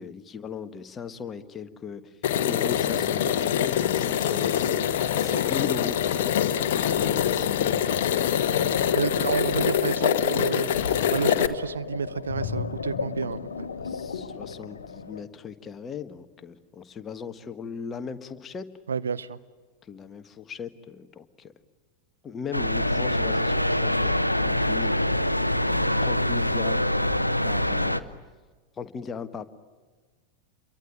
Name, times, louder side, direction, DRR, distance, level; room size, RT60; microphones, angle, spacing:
voice 1, 0.0-2.1 2.4-8.3 13.8-18.6 19.8-21.5 22.2-24.9 25.7-26.8 27.1-28.0 28.8-29.4, left 6 dB, 20° left, 10 dB, 1.5 m, -38 dB
sound 1, 2.2-11.5, left 10 dB, 55° left, 1.2 m, -24 dB
sound 2, 6.7-15.2, left 5 dB, 70° left, 1.4 m, -34 dB
voice 2, 8.9-13.7 18.9-19.4, right 6 dB, 70° right, 14 dB, 0.8 m, -30 dB
sound 3, 22.5-28.0, left 1 dB, 90° left, 0.9 m, -24 dB
28.5 x 23.0 x 9.1 m, 1.4 s
figure-of-eight pair, 90°, 0 cm